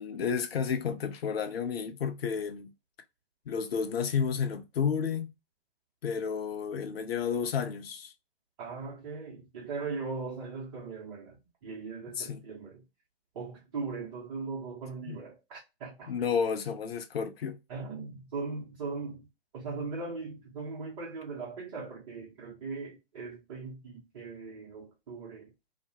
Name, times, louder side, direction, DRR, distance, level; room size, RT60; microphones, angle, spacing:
voice 1, 0.0-2.7 3.5-5.3 6.0-8.1 12.1-12.5 15.0-15.2 16.1-17.6, left 6 dB, 70° left, 0.5 m, -31 dB
voice 2, 8.6-11.4 11.6-12.8 13.3-16.1 17.7-19.3 19.5-25.5, right 4 dB, 35° right, 0.8 m, -39 dB
2.4 x 2.1 x 2.7 m
figure-of-eight pair, 130°, 32 cm